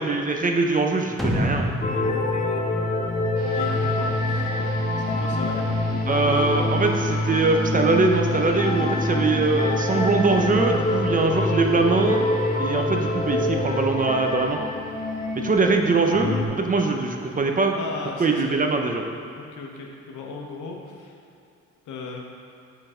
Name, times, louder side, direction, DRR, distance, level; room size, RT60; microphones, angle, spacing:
voice 1, 0.0-1.7 6.1-12.2 12.6-14.6 15.3-17.8 18.2-19.0, right 3 dB, 25° right, 3 dB, 0.6 m, -22 dB
sound 1, 1.2-3.7, equal, ahead, 0.9 m, -28 dB
sound 2, 1.8-16.5, left 2 dB, 25° left, 0.6 m, -25 dB
voice 2, 3.4-4.7 5.1-5.7 6.3-6.5 17.7-18.6 19.3-21.1 21.9-22.3, left 4 dB, 80° left, 0 dB, 1.0 m, -36 dB
sound 3, 3.4-18.2, right 1 dB, 90° right, 1.6 m, -41 dB
6.7 x 4.0 x 4.9 m, 2.6 s
cardioid pair, 90°, 30 cm